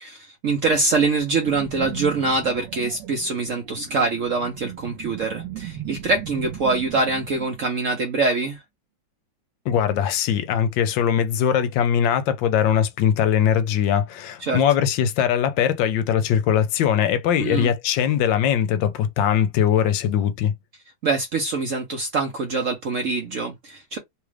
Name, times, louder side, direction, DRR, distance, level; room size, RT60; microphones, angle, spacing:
voice 1, 0.0-8.6 14.4-14.6 17.4-17.7 21.0-24.0, right 3 dB, 60° right, 0.9 m, -24 dB
sound 1, 1.4-8.2, right 12 dB, 80° right, 1.3 m, -37 dB
voice 2, 9.7-20.5, left 9 dB, 80° left, 1.2 m, -21 dB
3.2 x 2.4 x 3.2 m
omnidirectional pair, 2.1 m